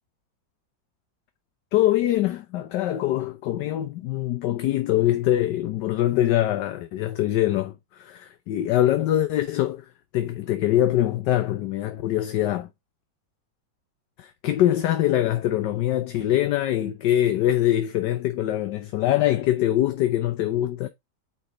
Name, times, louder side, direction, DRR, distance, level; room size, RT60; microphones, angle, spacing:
voice 1, 1.7-9.8 10.1-12.7 14.2-20.9, left 13 dB, 75° left, 1.3 m, -23 dB
9.0 x 3.4 x 4.1 m
omnidirectional pair, 2.0 m